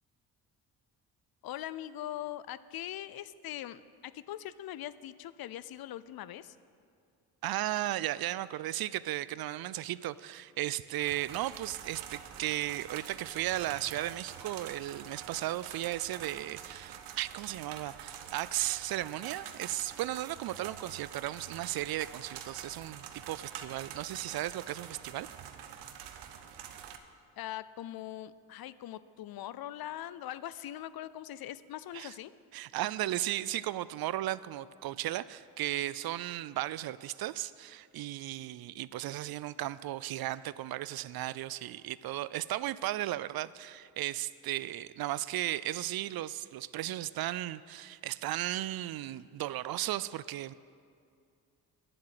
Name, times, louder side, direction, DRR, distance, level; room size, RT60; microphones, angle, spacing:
voice 1, 1.4-6.6 27.4-32.3, left 12 dB, 65° left, 16 dB, 0.5 m, -41 dB
voice 2, 7.4-25.3 31.9-32.1 32.5-50.5, right 14 dB, 65° right, 17 dB, 0.5 m, -35 dB
sound 1, 11.0-27.0, right 9 dB, 85° right, 0.9 m, -46 dB
10.0 x 7.5 x 9.0 m, 2.4 s
supercardioid pair, 65°, 40 cm